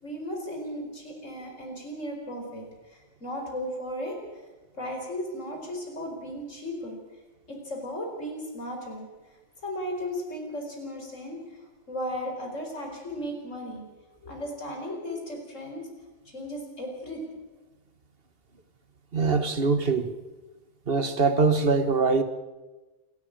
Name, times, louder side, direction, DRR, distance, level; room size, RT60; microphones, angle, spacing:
voice 1, 0.0-4.2 4.7-7.0 7.5-9.1 9.6-11.4 11.9-13.8 14.2-15.9 16.2-17.2, equal, 90° left, 5.1 m, -35 dB
voice 2, 19.1-20.1 20.9-22.2, right 4 dB, 50° right, 1.8 m, -23 dB
28.0 x 13.0 x 8.9 m
omnidirectional pair, 1.3 m